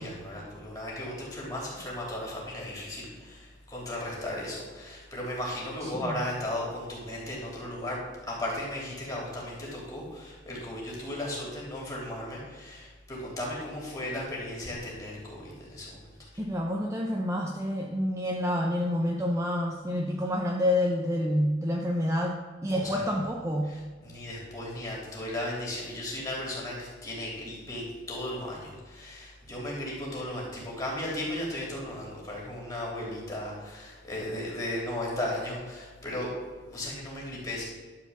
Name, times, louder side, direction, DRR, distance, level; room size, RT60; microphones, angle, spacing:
voice 1, 0.0-16.3 22.7-23.0 23.6-36.3 36.7-37.6, left 1 dB, 20° left, -4 dB, 3.3 m, -36 dB
voice 2, 5.8-6.2 16.4-23.7, left 1 dB, 15° right, 0 dB, 0.7 m, -28 dB
11.5 x 5.0 x 7.1 m, 1.5 s
head